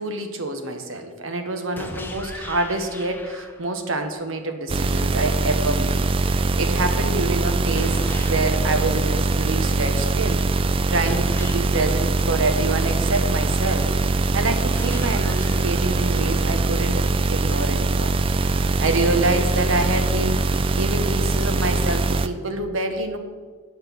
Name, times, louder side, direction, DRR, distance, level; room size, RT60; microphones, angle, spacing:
voice 1, 0.0-6.0 6.6-10.4 10.9-13.9 14.3-18.1 18.8-20.4 20.8-23.2, right 2 dB, 85° right, 6 dB, 1.0 m, -26 dB
sound 1, 1.8-3.8 7.8-9.8 11.1-13.1 14.8-16.8, left 1 dB, 10° left, 0.7 m, -38 dB
sound 2, 4.7-22.3, right 3 dB, 25° right, 0.3 m, -22 dB
7.9 x 5.9 x 7.0 m, 1.5 s
head